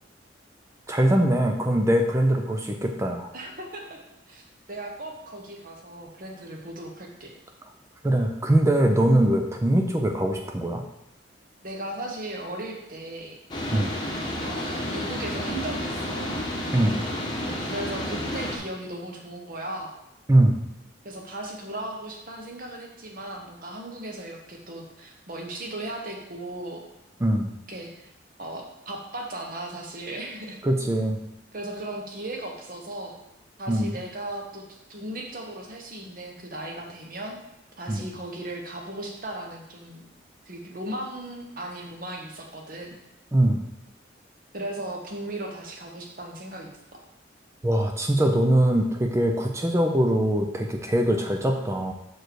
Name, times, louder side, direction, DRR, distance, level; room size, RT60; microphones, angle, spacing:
voice 1, 0.9-3.3 8.0-10.8 13.7-14.0 16.7-17.0 20.3-20.6 27.2-27.5 30.6-31.2 33.7-33.9 37.9-38.0 43.3-43.6 47.6-51.9, right 1 dB, 15° right, 3 dB, 0.4 m, -22 dB
voice 2, 3.3-4.0 4.3-4.4 4.7-7.3 11.6-13.4 14.4-16.4 17.7-19.9 21.0-26.8 27.7-28.1 28.4-30.6 31.5-33.2 33.6-34.6 34.9-37.4 37.8-40.1 40.5-43.0 44.5-47.0, right 1 dB, 45° right, 1 dB, 1.1 m, -36 dB
sound 1, 13.5-18.6, left 1 dB, 25° left, 1.0 m, -31 dB
6.3 x 4.6 x 4.6 m, 0.85 s
head